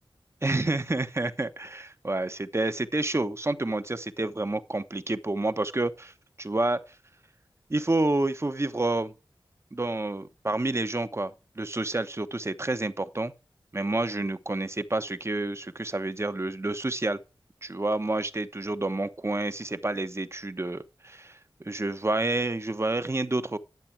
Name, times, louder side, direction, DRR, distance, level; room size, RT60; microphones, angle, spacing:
voice 1, 0.4-6.1 6.4-7.0 7.7-9.1 9.7-13.3 13.7-17.2 17.6-23.6, right 2 dB, 30° right, 1.0 m, -29 dB
10.5 x 7.5 x 5.8 m
wide cardioid pair, 55°, 9 cm